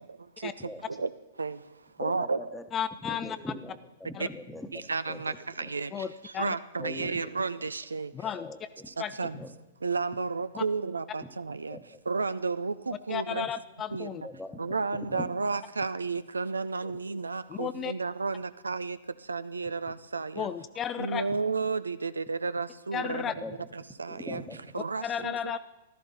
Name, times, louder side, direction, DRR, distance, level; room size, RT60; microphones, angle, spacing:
voice 1, 0.1-1.1 1.4-2.4 4.2-4.3 4.7-8.1 8.9-9.4 9.8-11.8 12.1-13.5 13.9-14.2 14.6-20.5 21.0-23.3 23.7-24.4 24.7-25.6, right 4 dB, 80° right, 15 dB, 0.5 m, -32 dB
voice 2, 0.6-1.0 2.0-2.6 3.0-5.7 6.8-7.3 8.2-8.9 9.2-9.5 11.2-11.3 11.7-12.0 14.2-14.6 14.9-15.3 16.8-16.9 21.3-21.4 23.3-23.5 24.1-24.6 25.2-25.3, left 1 dB, 5° left, 7 dB, 1.2 m, -42 dB
voice 3, 2.7-3.4 4.1-4.3 5.9-6.6 8.1-8.5 9.0-9.1 10.6-10.7 13.1-14.2 17.5-17.9 20.4-21.3 22.9-23.3 24.8-25.6, left 8 dB, 25° left, 13 dB, 0.4 m, -33 dB
14.5 x 12.5 x 4.2 m, 1.0 s
figure-of-eight pair, 105°, 0 cm